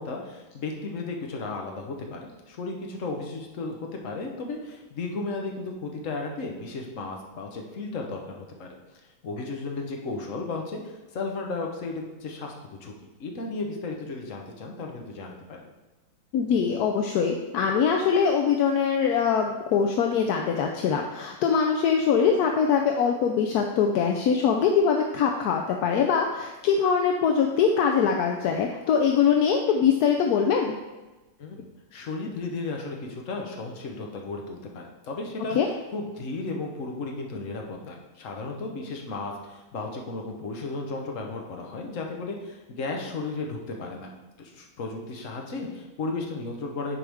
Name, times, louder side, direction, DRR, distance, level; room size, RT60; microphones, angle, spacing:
voice 1, 0.0-8.7 9.2-12.9 13.2-15.6 31.4-35.6 35.9-44.1 44.4-47.0, left 3 dB, 50° left, 1 dB, 1.2 m, -34 dB
voice 2, 16.3-30.8 35.5-35.7, left 6 dB, 70° left, 2 dB, 0.9 m, -23 dB
10.0 x 4.6 x 3.5 m, 1.1 s
omnidirectional pair, 2.1 m